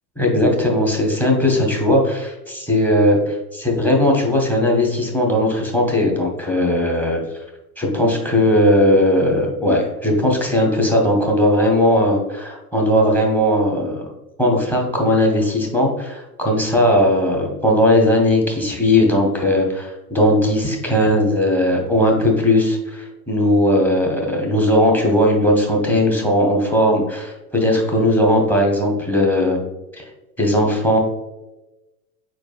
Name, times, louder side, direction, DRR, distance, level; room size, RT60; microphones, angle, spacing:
voice 1, 0.2-7.2 7.8-14.1 14.4-29.6 29.9-30.0 30.4-31.0, left 1 dB, 5° left, 0 dB, 0.7 m, -18 dB
4.7 x 4.3 x 2.3 m, 1.0 s
figure-of-eight pair, 85°, 46 cm